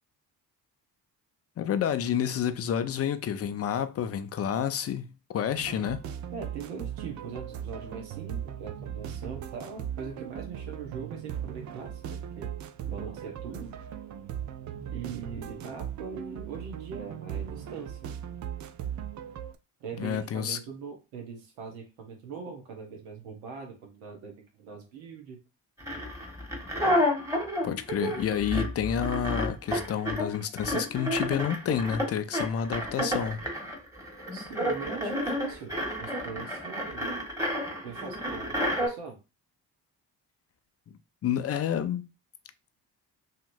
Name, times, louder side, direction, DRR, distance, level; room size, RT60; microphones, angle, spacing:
voice 1, 1.6-6.0 20.0-20.6 27.6-33.4 41.2-42.1, left 8 dB, 30° left, 0.4 m, -29 dB
sound 1, 5.5-19.6, right 9 dB, 40° right, 0.4 m, -38 dB
voice 2, 6.3-12.5 12.9-13.7 14.9-18.1 19.8-25.4 34.3-37.1 37.8-39.2, right 5 dB, 80° right, 1.0 m, -41 dB
sound 2, 25.8-38.9, equal, 5° right, 1.4 m, -30 dB
2.8 x 2.8 x 2.6 m
hypercardioid pair, 40°, 49 cm